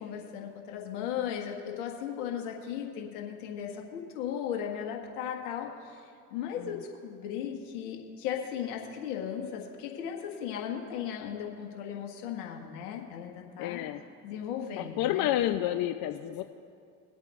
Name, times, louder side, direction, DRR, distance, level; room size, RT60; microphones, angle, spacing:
voice 1, 0.0-6.0 6.3-13.8 14.2-15.3, left 9 dB, 75° left, 1 dB, 1.8 m, -36 dB
voice 2, 13.6-14.0 14.8-16.4, left 13 dB, 50° left, 8 dB, 0.6 m, -30 dB
22.5 x 8.2 x 2.6 m, 2.4 s
hypercardioid pair, 65°, 46 cm